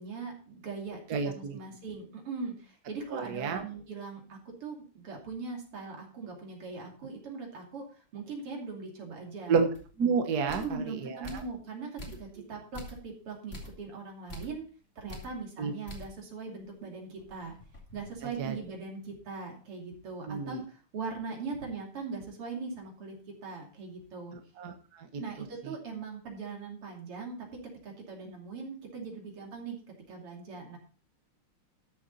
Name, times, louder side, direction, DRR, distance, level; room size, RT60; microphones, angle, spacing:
voice 1, 0.0-9.6 10.5-14.7 15.0-17.5 17.9-24.4 25.2-27.5 27.8-29.8 30.1-30.8, right 4 dB, 85° right, 0 dB, 3.7 m, -40 dB
voice 2, 1.1-1.6 3.1-3.6 9.5-9.7 10.0-11.3 15.6-15.7 18.4-18.5 20.3-20.6 24.6-25.1 25.6-25.7, right 5 dB, 50° right, 5 dB, 1.7 m, -30 dB
sound 1, 9.7-9.9 10.5-10.8 11.2-11.6 12.0-12.4 12.7-13.1 13.5-13.8 14.3-14.6 15.1-15.4 15.9-16.2 16.6-16.7 17.2-18.7, left 1 dB, 30° left, 2.6 m, -46 dB
13.0 x 7.2 x 4.1 m, 0.38 s
omnidirectional pair, 2.4 m